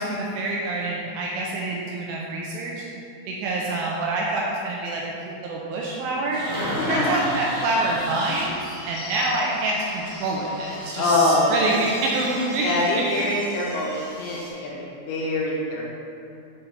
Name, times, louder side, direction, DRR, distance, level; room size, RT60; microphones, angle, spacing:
voice 1, 0.0-2.9 3.3-6.4 6.9-13.0, right 2 dB, 85° right, -3 dB, 2.9 m, -26 dB
sound 1, 6.3-8.5 10.6-14.5, right 1 dB, 60° right, 2.5 m, -35 dB
voice 2, 6.8-7.3 11.0-11.7 12.6-15.8, left 2 dB, 90° left, -4 dB, 3.9 m, -24 dB
Bird / Bell, 7.8-12.8, left 1 dB, 60° left, 1.6 m, -40 dB
9.2 x 4.4 x 4.1 m, 2.6 s
omnidirectional pair, 6.0 m